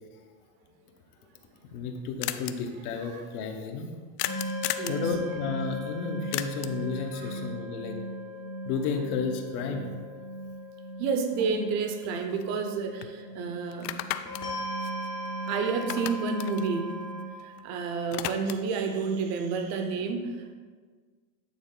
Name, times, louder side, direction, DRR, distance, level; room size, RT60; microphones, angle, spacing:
sound 1, 1.3-1.4 1.5-1.6 1.8-1.9 2.2-2.5 4.2-5.0 6.3-6.9 11.1-11.2 11.5-12.7 13.0-13.1 13.7-15.5 15.8-17.6 17.9-18.8, left 13 dB, 90° left, 0.6 m, -35 dB
voice 1, 1.7-3.9 4.9-8.0 8.6-9.9, left 5 dB, 70° left, 4 dB, 1.0 m, -32 dB
sound 2, 4.2-17.3, equal, 10° left, 0.5 m, -37 dB
voice 2, 11.0-13.9 15.5-17.0 17.4-20.5, right 5 dB, 40° right, 6 dB, 0.7 m, -30 dB
9.3 x 4.0 x 3.9 m, 1.5 s
supercardioid pair, 170°, 46 cm